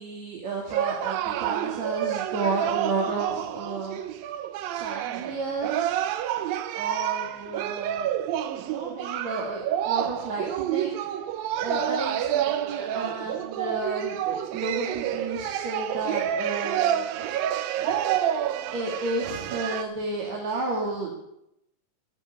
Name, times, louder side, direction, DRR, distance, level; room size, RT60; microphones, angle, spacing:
voice 1, 0.0-4.0 4.7-6.0 6.7-11.1 11.5-17.4 17.7-21.3, right 3 dB, 50° right, -2 dB, 3.1 m, -32 dB
sound 1, 0.7-19.8, right 11 dB, 80° right, 2.5 m, -29 dB
14.0 x 8.8 x 9.5 m, 0.82 s
omnidirectional pair, 4.2 m